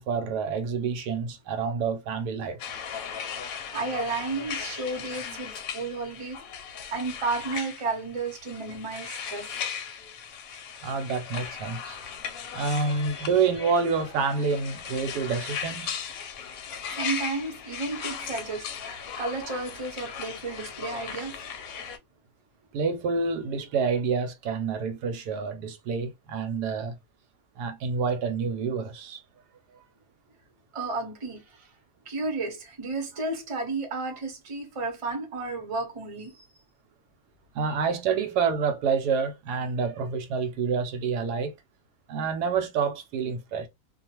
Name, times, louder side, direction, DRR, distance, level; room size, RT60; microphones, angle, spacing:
voice 1, 0.0-2.6 10.8-12.0 12.5-16.0 22.7-27.0 27.6-29.2 37.5-41.5 42.1-43.7, right 5 dB, 85° right, 1.2 m, -28 dB
sound 1, 2.6-22.0, left 7 dB, 70° left, 0.9 m, -37 dB
voice 2, 3.7-6.4 6.9-9.5 12.5-13.3 16.9-21.4 30.7-31.7 32.1-36.5, right 3 dB, 25° right, 0.7 m, -33 dB
2.4 x 2.3 x 2.8 m
omnidirectional pair, 1.7 m